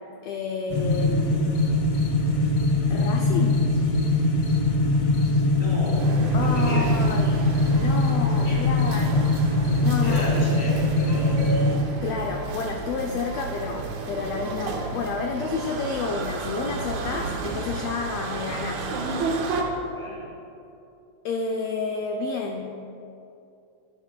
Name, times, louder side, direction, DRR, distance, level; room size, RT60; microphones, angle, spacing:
voice 1, 0.2-1.5 2.9-3.6 6.3-7.4 7.8-9.3 9.8-10.3 12.0-18.9 21.2-22.8, left 4 dB, 85° left, 2 dB, 1.4 m, -30 dB
sound 1, 0.7-11.8, left 2 dB, 65° left, 1.9 m, -22 dB
voice 2, 5.4-7.0 8.4-8.6 10.0-11.5 19.9-20.3, equal, 35° right, -7 dB, 0.8 m, -34 dB
sound 2, 6.0-19.6, right 4 dB, 75° right, 2.0 m, -32 dB
12.0 x 9.4 x 2.2 m, 2.7 s
omnidirectional pair, 3.5 m